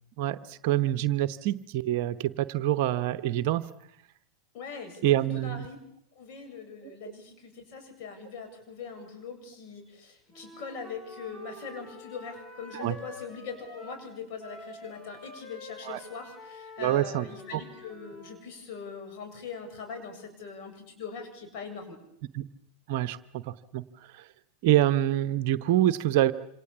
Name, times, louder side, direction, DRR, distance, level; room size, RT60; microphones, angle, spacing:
voice 1, 0.2-3.7 5.0-5.7 6.8-6.9 12.7-12.9 15.9-16.0 16.8-17.3 17.5-17.6 22.3-22.5 22.9-23.4 23.7-23.8 24.6-26.3, right 13 dB, 50° right, 14 dB, 1.0 m, -26 dB
voice 2, 4.5-5.8 6.2-22.0, left 5 dB, 45° left, 5 dB, 7.6 m, -41 dB
Wind instrument woodwind instrument, 10.3-14.1 14.4-18.4, left 2 dB, 25° left, 7.8 m, -48 dB
27.5 x 27.0 x 7.3 m, 0.74 s
figure-of-eight pair, 90°, 0 cm